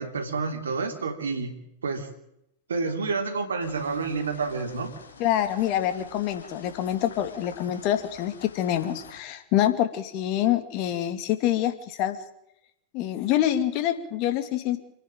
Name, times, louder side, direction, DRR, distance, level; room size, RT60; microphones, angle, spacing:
voice 1, 0.0-2.1 2.7-4.9, right 4 dB, 80° right, 6 dB, 3.2 m, -29 dB
sound 1, 3.6-9.2, left 5 dB, 75° left, 3.6 m, -48 dB
voice 2, 5.2-12.2 12.9-14.8, left 12 dB, 50° left, 9 dB, 2.6 m, -26 dB
28.0 x 10.0 x 9.2 m, 0.82 s
hypercardioid pair, 95°, 0 cm